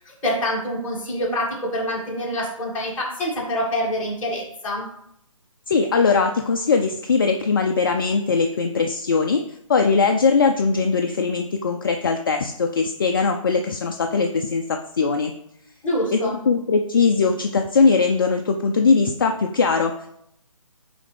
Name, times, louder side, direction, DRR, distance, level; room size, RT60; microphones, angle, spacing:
voice 1, 0.0-4.9 15.8-16.4, equal, 10° left, -8 dB, 1.9 m, -26 dB
voice 2, 5.7-9.4 9.7-15.3 16.1-20.1, left 4 dB, 40° left, 4 dB, 0.4 m, -20 dB
8.7 x 3.4 x 3.3 m, 0.74 s
figure-of-eight pair, 155°, 18 cm